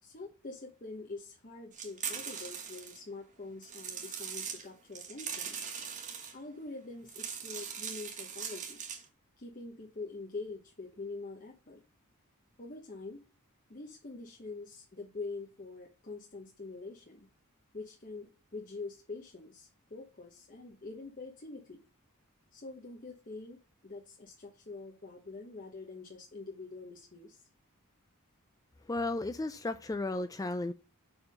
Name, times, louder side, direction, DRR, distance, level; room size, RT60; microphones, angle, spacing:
voice 1, 0.0-5.6 6.3-8.8 9.4-11.8 12.6-13.3 13.7-17.3 17.7-21.8 22.5-27.5, left 3 dB, 40° left, 1.1 m, -45 dB
sound 1, 1.7-3.0 3.6-4.7 4.9-6.3 7.0-9.0, right 7 dB, 35° right, 1.3 m, -40 dB
voice 2, 28.9-30.7, left 2 dB, 15° left, 0.3 m, -34 dB
5.5 x 4.8 x 6.3 m
head